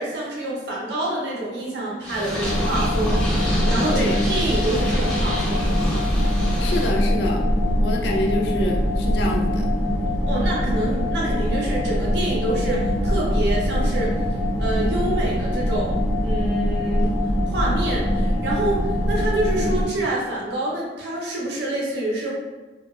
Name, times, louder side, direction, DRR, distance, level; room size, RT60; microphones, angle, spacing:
voice 1, 0.0-6.0 10.3-14.1 14.6-17.1 17.5-22.3, right 1 dB, 70° right, -4 dB, 0.6 m, -27 dB
Purr, 2.0-6.9, equal, 5° left, 0.5 m, -28 dB
Noisy-Cooler mono, 2.4-19.9, equal, 20° right, 0.8 m, -23 dB
voice 2, 3.9-4.2 6.6-7.5 7.8-9.7, left 1 dB, 65° left, 0 dB, 0.3 m, -26 dB
2.8 x 2.1 x 2.3 m, 1.2 s
head